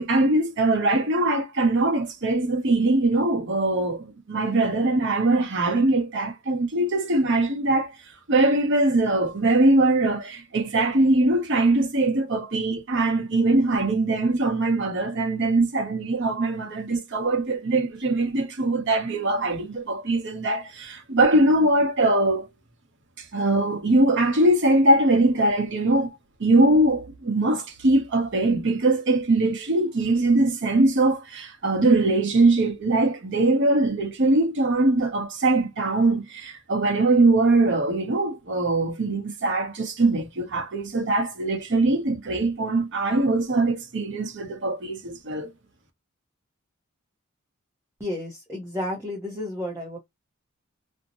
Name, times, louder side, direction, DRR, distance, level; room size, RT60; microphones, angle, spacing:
voice 1, 0.0-7.9 8.3-22.5 23.2-26.1 26.4-45.5, right 2 dB, 60° right, 0.8 m, -22 dB
voice 2, 48.0-50.0, left 1 dB, 15° right, 0.7 m, -32 dB
2.6 x 2.1 x 2.8 m
head